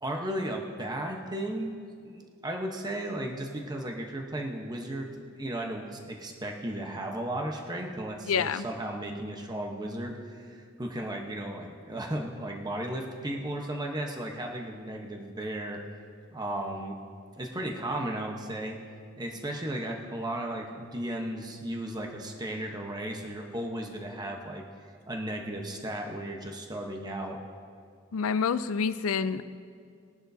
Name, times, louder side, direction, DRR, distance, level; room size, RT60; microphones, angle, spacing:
voice 1, 0.0-1.7 2.0-15.8 16.3-17.0 17.4-18.8 19.2-24.6 25.1-27.4, right 1 dB, 20° right, 2 dB, 1.0 m, -35 dB
voice 2, 8.3-8.7 28.1-29.4, left 6 dB, 90° left, 14 dB, 0.5 m, -27 dB
21.0 x 11.0 x 2.7 m, 2.2 s
head